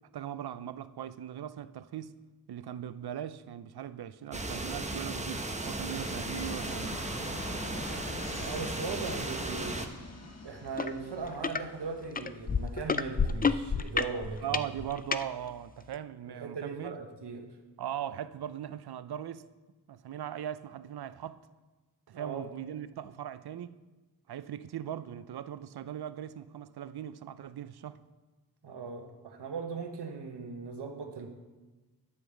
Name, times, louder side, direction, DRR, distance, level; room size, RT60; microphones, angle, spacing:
voice 1, 0.1-2.2 2.5-7.0 14.4-17.0 17.8-19.4 19.9-21.4 22.1-23.8 24.3-28.0, right 10 dB, 70° right, 0.5 m, -39 dB
sound 1, 4.3-9.9, right 2 dB, 15° right, 0.9 m, -36 dB
Fixed-wing aircraft airplane, 5.9-14.9, left 3 dB, 40° left, 1.2 m, -46 dB
voice 2, 8.4-9.8 10.4-14.6 16.3-17.4 22.1-22.5 28.6-31.3, right 4 dB, 90° right, 1.1 m, -39 dB
sound 2, 10.8-10.9 11.2-11.6 12.2-15.2 15.9-16.0, left 5 dB, 25° left, 0.4 m, -29 dB
9.7 x 5.0 x 7.0 m
cardioid pair, 55°, 40 cm